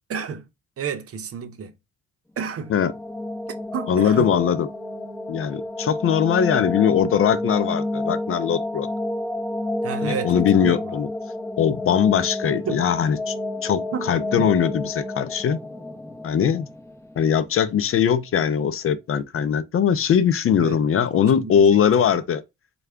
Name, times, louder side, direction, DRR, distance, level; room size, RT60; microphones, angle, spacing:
voice 1, 0.1-0.4 0.8-1.7 2.4-2.7 3.7-4.3 9.8-11.0 12.7-12.8 13.9-14.1 14.4-14.5 20.6-20.8 21.1-22.1, right 6 dB, 50° right, 0.7 m, -31 dB
sound 1, 2.5-17.5, left 2 dB, 10° left, 0.9 m, -30 dB
voice 2, 3.9-4.7 5.3-8.9 10.0-11.1 11.6-13.3 13.6-15.6 16.2-16.7 17.2-22.4, left 8 dB, 45° left, 0.5 m, -21 dB
4.6 x 2.3 x 3.4 m
cardioid pair, 90°, 30 cm